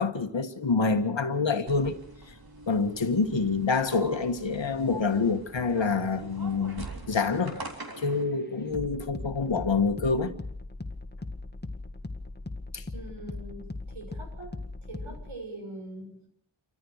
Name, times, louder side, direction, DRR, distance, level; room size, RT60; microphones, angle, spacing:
voice 1, 0.0-2.0 2.3-2.4 2.7-7.6 8.0-10.3 12.7-12.8, left 4 dB, 65° left, 1.9 m, -27 dB
sound 1, 1.7-8.2, right 2 dB, 50° right, 3.7 m, -43 dB
sound 2, 6.9-15.4, left 2 dB, 20° left, 2.0 m, -40 dB
voice 2, 12.8-16.3, right 1 dB, 85° right, 6.3 m, -43 dB
28.0 x 14.0 x 6.6 m
cardioid pair, 50°, 47 cm